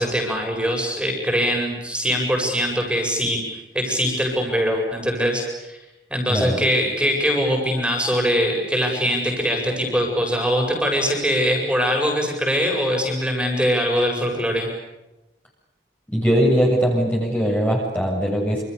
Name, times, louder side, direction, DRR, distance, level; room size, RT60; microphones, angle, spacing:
voice 1, 0.0-3.4 3.7-5.8 6.1-14.7, equal, 5° right, 1 dB, 7.9 m, -22 dB
voice 2, 6.3-6.6 16.1-18.6, equal, 10° left, -3 dB, 7.3 m, -20 dB
29.0 x 29.0 x 7.0 m, 0.99 s
head